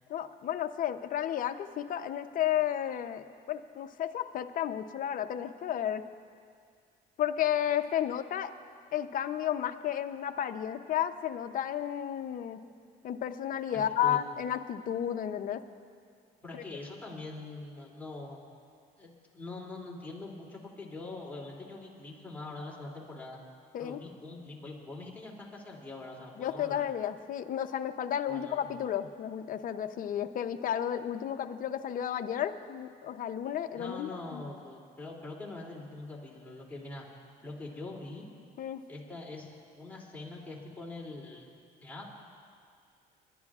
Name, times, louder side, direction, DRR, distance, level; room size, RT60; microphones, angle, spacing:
voice 1, 0.1-6.0 7.2-8.5 8.9-12.6 13.0-15.6 16.5-16.6 23.7-24.0 26.4-34.4 38.6-38.8, left 10 dB, 50° left, 8 dB, 0.7 m, -32 dB
voice 2, 13.7-14.2 16.4-18.4 19.0-23.4 23.8-26.9 28.3-28.7 33.8-37.1 37.4-38.3 38.9-41.5 41.8-42.1, left 2 dB, 10° left, -4 dB, 2.8 m, -43 dB
29.0 x 11.5 x 2.4 m, 2.2 s
cardioid pair, 95°, 18 cm